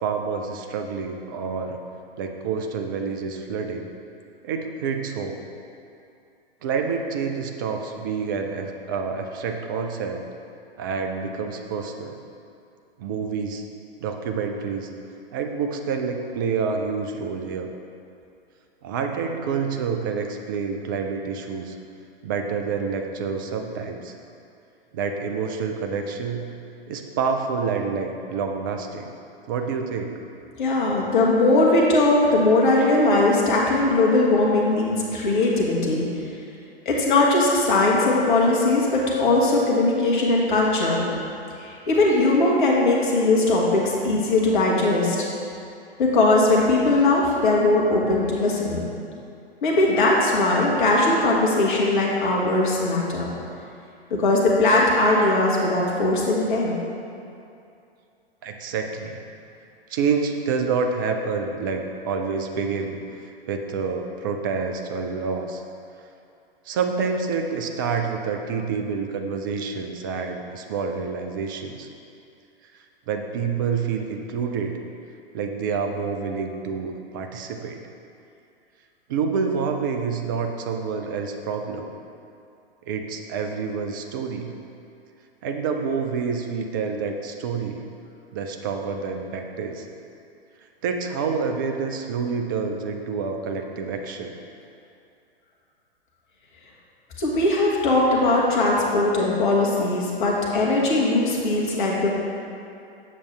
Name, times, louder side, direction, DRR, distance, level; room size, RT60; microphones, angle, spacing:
voice 1, 0.0-1.8 2.2-3.8 4.4-5.4 6.6-10.2 10.8-12.2 13.0-13.6 14.0-14.9 15.3-17.7 18.8-21.8 22.2-24.2 24.9-26.5 26.9-29.1 29.5-30.2 58.4-59.2 59.9-63.0 63.5-65.6 66.7-71.9 73.1-74.7 75.3-77.8 79.1-81.9 82.9-84.5 85.4-87.8 88.3-89.9 90.8-94.3, right 5 dB, 20° right, 4 dB, 0.3 m, -28 dB
voice 2, 30.5-36.0 36.8-41.0 41.6-45.3 46.0-48.9 49.6-53.3 54.1-56.8 97.2-102.2, left 2 dB, 50° left, -3 dB, 1.5 m, -20 dB
7.4 x 6.6 x 3.3 m, 2.6 s
figure-of-eight pair, 110°, 31 cm